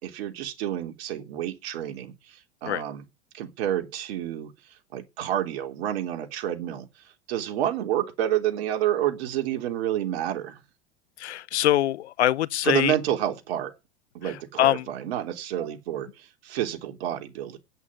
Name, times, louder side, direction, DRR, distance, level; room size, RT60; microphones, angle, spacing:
voice 1, 0.0-3.0 3.3-4.5 4.9-6.9 7.3-10.6 12.6-13.7 14.1-17.6, right 11 dB, 70° right, 3.5 m, -29 dB
voice 2, 11.2-12.9 14.2-14.9, left 13 dB, 90° left, 0.7 m, -24 dB
9.5 x 8.1 x 9.2 m
hypercardioid pair, 105°, 33 cm